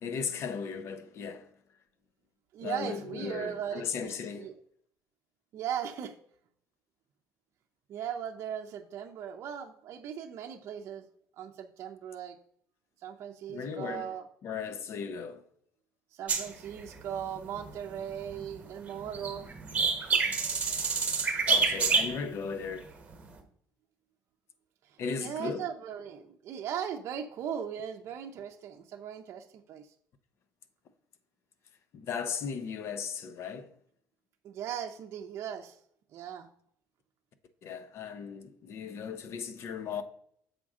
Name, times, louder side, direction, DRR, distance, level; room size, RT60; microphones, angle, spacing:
voice 1, 0.0-1.5 2.6-4.5 13.5-14.1 14.4-15.4 21.5-22.9 25.0-25.7 31.9-33.7 37.6-40.0, left 6 dB, 45° left, 0.7 m, -36 dB
voice 2, 2.5-4.5 5.5-6.1 7.9-11.0 11.4-12.4 13.0-14.2 16.1-19.5 25.2-29.8 34.4-35.8 36.1-36.5, right 9 dB, 45° right, 0.6 m, -38 dB
sound 1, 16.3-18.5 18.9-22.5 23.1-23.3, right 4 dB, 20° right, 1.1 m, -28 dB
7.5 x 5.1 x 3.6 m
cardioid pair, 145°, 6 cm